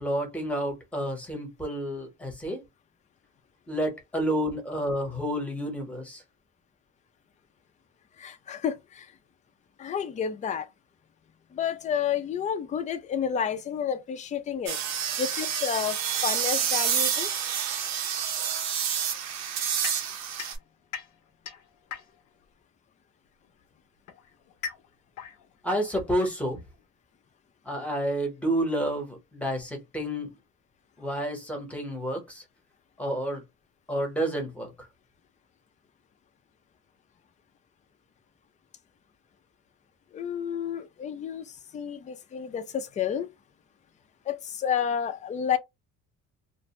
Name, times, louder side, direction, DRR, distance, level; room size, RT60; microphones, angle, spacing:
voice 1, 0.0-2.6 3.7-6.2 25.6-26.6 27.6-30.3 31.0-32.4 33.0-33.4 33.9-34.9, equal, 5° left, 0.9 m, -30 dB
voice 2, 8.2-9.1 9.8-10.7 11.5-14.8 15.2-17.3 40.1-43.3 44.3-45.6, left 8 dB, 25° left, 0.4 m, -30 dB
sound 1, 14.7-20.6, right 8 dB, 60° right, 0.7 m, -28 dB
sound 2, 19.8-22.4 23.5-26.8, left 7 dB, 70° left, 0.6 m, -42 dB
2.5 x 2.1 x 2.8 m
cardioid pair, 150°, 31 cm